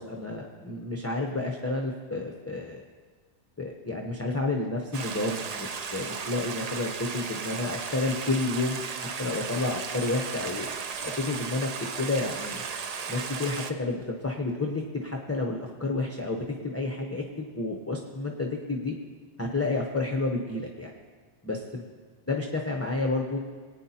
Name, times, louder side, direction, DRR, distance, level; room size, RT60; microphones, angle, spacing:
voice 1, 0.0-2.8 3.6-10.7 11.0-11.7 12.0-12.6 13.1-18.9 19.4-20.9 21.5-21.8 22.3-23.4, left 2 dB, 15° left, 1 dB, 0.6 m, -30 dB
Stream, 4.9-13.7, right 5 dB, 50° right, 0.5 m, -35 dB
22.5 x 9.1 x 2.8 m, 1.5 s
omnidirectional pair, 1.2 m